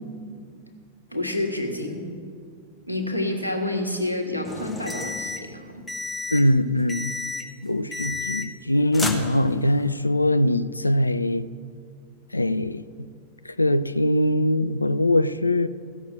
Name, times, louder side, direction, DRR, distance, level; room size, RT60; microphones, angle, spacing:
voice 1, 1.1-2.0 2.9-5.9, left 1 dB, 90° right, 1.5 m, -28 dB
sound 1, 4.4-5.5 5.9-6.5 6.9-7.5 7.9-8.7 8.9-9.8, left 3 dB, 10° left, 1.4 m, -32 dB
voice 2, 6.3-7.1 7.6-11.5 12.3-13.1 13.6-15.7, left 1 dB, 85° left, 0.4 m, -22 dB
16.0 x 6.5 x 8.0 m
figure-of-eight pair, 90°, 0 cm